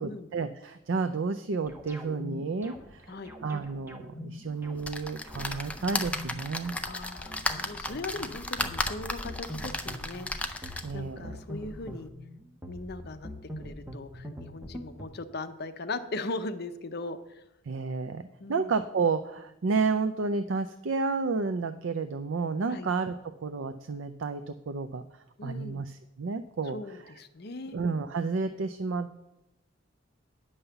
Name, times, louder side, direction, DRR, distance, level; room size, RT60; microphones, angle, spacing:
voice 1, 0.0-3.2 3.4-6.8 10.8-11.4 17.7-25.0 25.4-26.8 27.7-29.2, right 4 dB, 75° right, 10 dB, 0.5 m, -31 dB
sound 1, 1.7-15.0, left 1 dB, 10° right, 1.1 m, -44 dB
sound 2, 4.8-11.1 11.6-11.7 12.0-12.1, left 2 dB, 5° left, 0.6 m, -35 dB
voice 2, 6.8-12.1 12.7-17.4 18.4-18.7 22.7-22.9 25.4-25.8 26.7-27.8, left 2 dB, 55° left, 10 dB, 0.7 m, -39 dB
9.9 x 5.5 x 6.9 m, 0.88 s
head